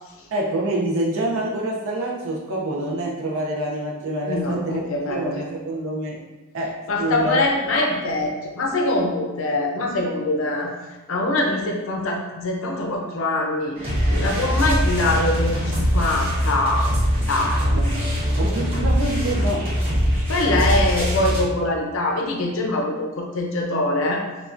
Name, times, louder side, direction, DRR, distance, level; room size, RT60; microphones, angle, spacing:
voice 1, 0.3-4.8 5.1-6.2 6.5-7.4 17.7-18.0 18.4-19.8, right 1 dB, 70° right, -2 dB, 0.5 m, -26 dB
voice 2, 4.3-5.3 6.9-10.7 11.1-16.9 17.3-17.6 20.3-24.2, left 2 dB, 65° left, 1 dB, 0.6 m, -23 dB
sound 1, 13.8-21.4, equal, 25° right, 1.2 m, -22 dB
5.7 x 2.3 x 2.5 m, 1.1 s
head